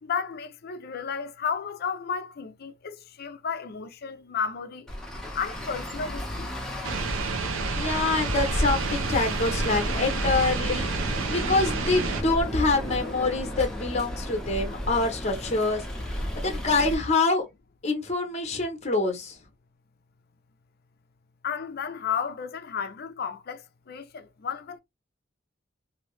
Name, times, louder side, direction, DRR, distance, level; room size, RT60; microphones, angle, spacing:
voice 1, 0.0-4.9 5.4-6.5 21.4-24.8, left 6 dB, 55° left, 0.5 m, -33 dB
Traffic noise roadway noise, 4.9-17.0, left 1 dB, 5° left, 0.8 m, -33 dB
sound 1, 6.8-12.2, right 3 dB, 90° right, 0.7 m, -29 dB
voice 2, 7.7-10.9 11.3-17.5 17.8-19.4, left 3 dB, 35° left, 0.9 m, -26 dB
2.9 x 2.7 x 3.1 m
head